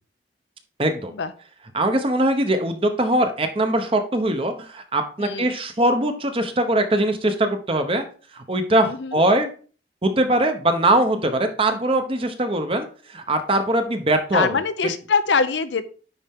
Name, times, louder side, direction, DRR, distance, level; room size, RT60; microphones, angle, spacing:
voice 1, 0.8-1.1 1.7-8.0 8.3-9.5 10.0-14.6, right 1 dB, 30° right, 7 dB, 0.9 m, -21 dB
voice 2, 5.2-5.5 8.8-9.2 14.3-15.9, left 5 dB, 85° left, 11 dB, 0.7 m, -23 dB
9.9 x 4.3 x 3.7 m, 0.40 s
head